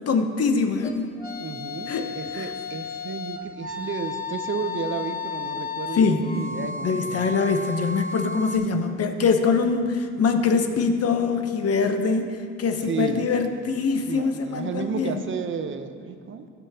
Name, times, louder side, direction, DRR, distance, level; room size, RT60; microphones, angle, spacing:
voice 1, 0.1-1.1 1.9-2.1 2.3-2.5 6.0-6.4 6.8-15.2, left 4 dB, 55° left, 6 dB, 0.8 m, -23 dB
sound 1, 0.8-8.6, left 4 dB, 30° left, 1.3 m, -33 dB
voice 2, 1.4-7.4 12.8-13.3 14.0-16.5, right 6 dB, 40° right, 9 dB, 0.7 m, -32 dB
15.5 x 5.9 x 2.8 m, 2.1 s
cardioid pair, 90°, 30 cm